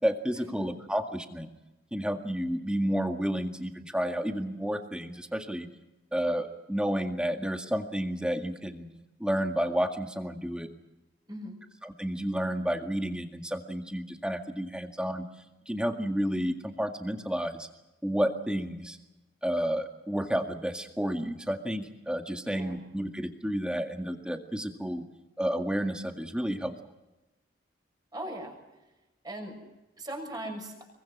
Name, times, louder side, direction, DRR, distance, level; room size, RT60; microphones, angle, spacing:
voice 1, 0.0-1.5 1.9-5.7 6.1-8.9 9.2-10.7 11.8-15.3 15.7-17.7 18.0-19.0 19.4-25.0 25.4-26.8, equal, 5° right, 4 dB, 2.0 m, -31 dB
voice 2, 22.4-22.8 28.1-28.6 29.2-29.6 30.0-30.7, right 1 dB, 20° right, 3 dB, 6.6 m, -38 dB
25.0 x 23.5 x 6.2 m, 1.0 s
head